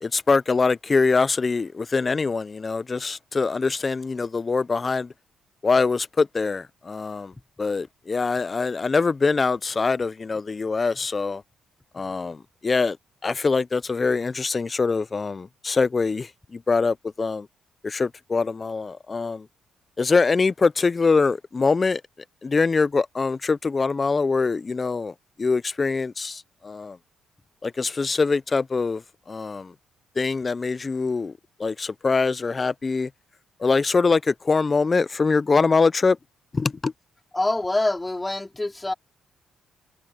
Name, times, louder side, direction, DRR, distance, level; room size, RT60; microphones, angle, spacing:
voice 1, 0.0-5.1 5.6-7.3 7.6-11.4 11.9-12.4 12.6-13.0 13.2-16.3 16.7-17.5 17.8-19.4 20.0-22.0 22.4-25.1 25.4-27.0 27.6-29.0 29.3-29.7 30.2-31.3 31.6-33.1 33.6-36.2 36.5-36.9, left 4 dB, 30° left, 0.4 m, -23 dB
voice 2, 37.3-38.9, left 2 dB, 15° left, 3.0 m, -25 dB
cardioid pair, 90°, 0 cm